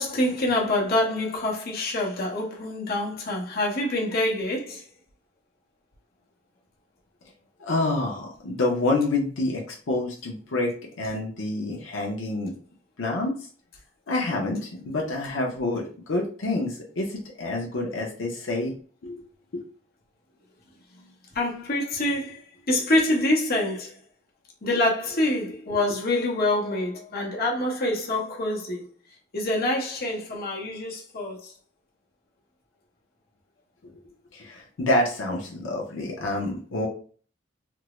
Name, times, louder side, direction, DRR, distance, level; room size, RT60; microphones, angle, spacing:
voice 1, 0.0-4.9 21.3-22.4 22.7-23.9 24.6-28.8 29.3-31.5, left 1 dB, 55° left, 1.0 m, -26 dB
voice 2, 7.6-12.5 13.0-13.3 14.1-18.7 19.0-19.2 34.3-36.9, left 2 dB, 85° left, 0.6 m, -27 dB
3.4 x 2.0 x 3.0 m
head